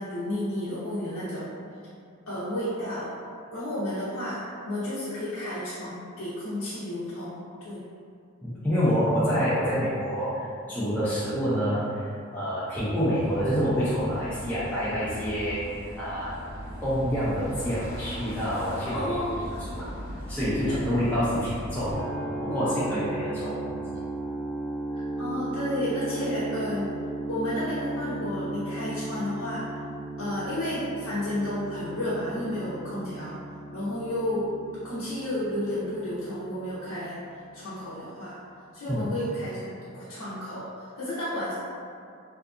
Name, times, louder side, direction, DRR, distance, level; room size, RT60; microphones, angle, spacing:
voice 1, 0.0-1.5 2.3-3.1 3.5-7.8 18.8-19.6 20.7-20.8 24.9-26.9 27.3-29.8 30.2-33.4 33.7-34.5 34.8-37.2 37.5-38.4 38.7-41.5, left 1 dB, 75° left, -11 dB, 0.5 m, -32 dB
voice 2, 8.4-16.4 16.8-19.2 20.3-22.1 22.4-23.8 38.9-39.1, equal, 5° left, -11 dB, 0.4 m, -27 dB
sound 1, 13.2-22.0, equal, 45° right, 0.6 m, -39 dB
sound 2, 21.9-37.8, right 2 dB, 90° right, 0.8 m, -36 dB
2.6 x 2.3 x 2.4 m, 2.3 s
head